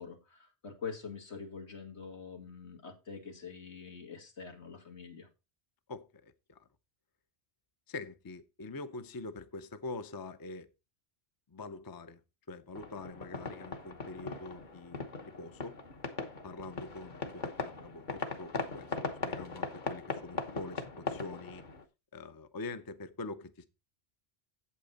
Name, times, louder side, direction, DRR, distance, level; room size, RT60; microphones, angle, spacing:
voice 1, 0.0-5.3, left 5 dB, 80° left, 2.3 m, -45 dB
voice 2, 5.9-6.7 7.9-10.7 11.5-12.2 12.5-15.8 16.4-21.6 22.1-23.6, left 3 dB, 25° left, 0.5 m, -44 dB
sound 1, 12.8-21.8, left 3 dB, 45° left, 1.2 m, -40 dB
8.6 x 7.9 x 4.1 m
omnidirectional pair, 1.1 m